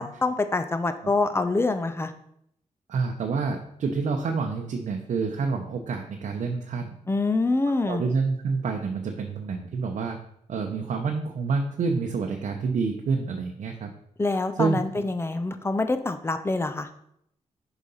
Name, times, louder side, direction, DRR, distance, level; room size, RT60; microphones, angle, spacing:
voice 1, 0.0-2.1 7.1-8.0 14.2-16.9, left 3 dB, 20° left, 9 dB, 0.6 m, -25 dB
voice 2, 2.9-7.0 7.8-10.2 10.5-13.9 14.3-14.8, right 4 dB, 70° right, 2 dB, 0.8 m, -28 dB
6.6 x 5.0 x 5.5 m, 0.73 s
wide cardioid pair, 120°, 13 cm